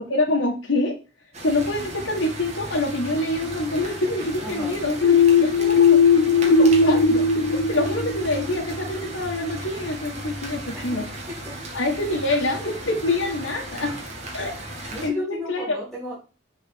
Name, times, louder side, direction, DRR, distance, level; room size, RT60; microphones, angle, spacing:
voice 1, 0.1-1.0 1.4-6.0 6.3-11.0 11.7-14.0 14.3-15.8, left 2 dB, 85° left, -2 dB, 1.7 m, -26 dB
sound 1, 1.3-15.1, right 1 dB, 35° right, 2.2 m, -36 dB
voice 2, 4.4-4.8 10.7-11.7 14.5-14.6 14.9-16.2, equal, ahead, -6 dB, 3.4 m, -36 dB
sound 2, 5.0-8.7, left 4 dB, 55° left, 0.7 m, -18 dB
7.3 x 4.5 x 6.2 m, 0.34 s
head